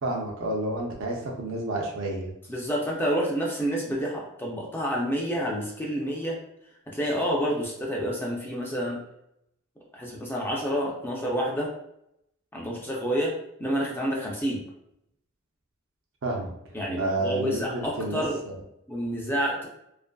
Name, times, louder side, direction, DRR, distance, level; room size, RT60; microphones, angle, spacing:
voice 1, 0.0-2.3 16.2-16.5 17.0-18.6, right 2 dB, 60° right, 0 dB, 0.6 m, -30 dB
voice 2, 2.5-6.4 6.9-9.0 9.9-11.7 12.5-13.3 13.6-14.6 16.7-18.4 18.9-19.7, equal, 10° left, -3 dB, 0.4 m, -28 dB
2.5 x 2.5 x 2.2 m, 0.77 s
head